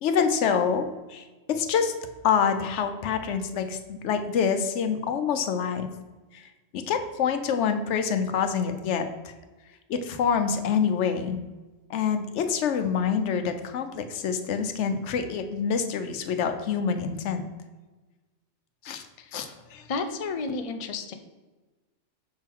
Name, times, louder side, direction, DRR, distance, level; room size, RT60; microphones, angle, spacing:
voice 1, 0.0-1.9 2.2-5.9 6.3-9.3 9.9-11.4 11.9-17.4 18.8-19.1 19.3-19.9, left 6 dB, 75° left, 8 dB, 0.9 m, -26 dB
voice 2, 19.9-21.1, left 4 dB, 50° left, 7 dB, 0.4 m, -31 dB
6.6 x 3.7 x 4.5 m, 1.2 s
omnidirectional pair, 1.2 m